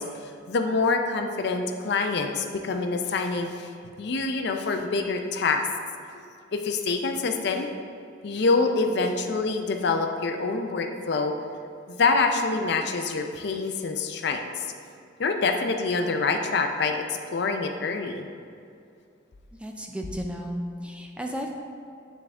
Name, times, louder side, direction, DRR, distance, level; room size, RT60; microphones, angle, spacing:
voice 1, 0.0-3.7 4.0-5.7 6.5-7.7 8.2-11.3 11.9-14.7 15.2-18.3, left 4 dB, 60° left, 5 dB, 0.5 m, -26 dB
voice 2, 19.6-21.6, equal, 5° right, 2 dB, 0.4 m, -33 dB
9.1 x 3.5 x 3.5 m, 2.5 s
head